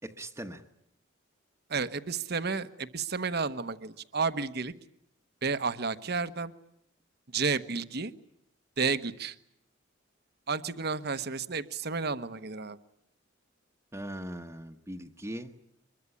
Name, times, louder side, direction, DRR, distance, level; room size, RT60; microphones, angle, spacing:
voice 1, 0.0-0.6 13.9-15.5, right 1 dB, 15° right, 4 dB, 1.1 m, -40 dB
voice 2, 1.7-4.7 5.4-6.5 7.3-8.1 8.8-9.3 10.5-12.8, right 4 dB, 55° right, 12 dB, 1.1 m, -31 dB
24.5 x 22.5 x 9.9 m, 0.72 s
head